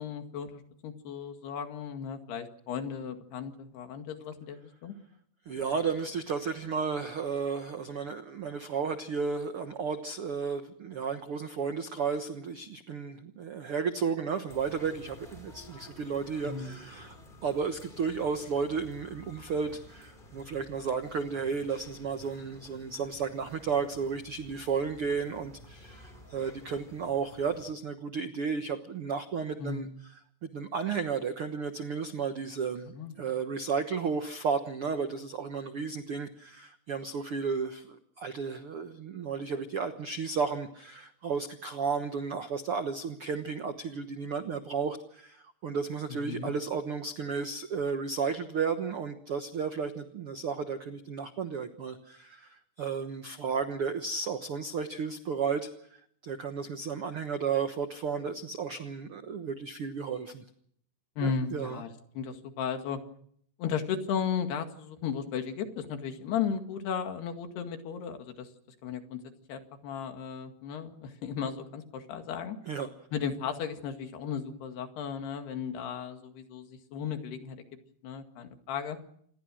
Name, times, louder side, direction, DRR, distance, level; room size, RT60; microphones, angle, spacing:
voice 1, 0.0-4.9 16.5-16.8 29.6-30.0 32.9-33.2 46.1-46.5 61.2-61.9 62.2-63.0 63.6-68.5 68.8-69.2 69.5-72.6 73.1-77.6 78.0-79.0, left 7 dB, 85° left, 6 dB, 4.1 m, -35 dB
voice 2, 5.5-17.1 17.4-29.9 30.4-60.4 61.2-61.8 72.7-72.9, right 5 dB, 80° right, 8 dB, 1.2 m, -33 dB
sound 1, 14.5-27.7, left 1 dB, 15° left, 3.5 m, -52 dB
28.0 x 20.5 x 6.3 m, 0.67 s
omnidirectional pair, 4.5 m